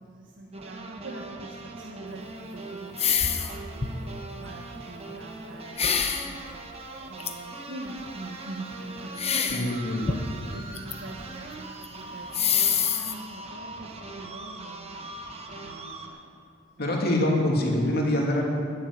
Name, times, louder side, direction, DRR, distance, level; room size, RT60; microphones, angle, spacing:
voice 1, 0.0-2.2 2.5-6.5 7.0-10.2 10.5-15.0 15.5-16.3 16.7-17.0, right 2 dB, 75° right, -1 dB, 1.4 m, -44 dB
sound 1, 0.5-16.1, right 2 dB, 30° right, 1.3 m, -41 dB
sound 2, 3.0-3.5 3.8-4.1 5.8-6.3 7.2-7.3 9.2-9.7 10.0-10.9 11.2-11.3 11.8-11.9 12.3-13.1, left 7 dB, 35° left, 0.9 m, -25 dB
voice 2, 9.5-10.5 16.8-18.4, left 1 dB, 55° left, -1 dB, 2.5 m, -25 dB
13.0 x 7.4 x 9.8 m, 2.7 s
head